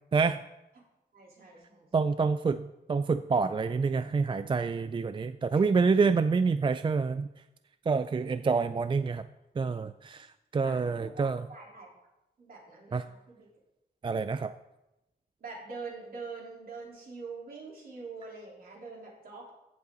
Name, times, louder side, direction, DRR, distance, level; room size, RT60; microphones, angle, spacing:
voice 1, 1.1-1.9 10.6-11.9 12.4-13.5 15.4-19.5, right 4 dB, 60° right, -3 dB, 3.8 m, -44 dB
voice 2, 1.9-7.3 7.9-9.2 9.6-11.5 12.9-13.1 14.0-14.5, right 4 dB, 30° right, 12 dB, 0.3 m, -27 dB
15.0 x 8.2 x 3.9 m, 0.96 s
wide cardioid pair, 120°, 17 cm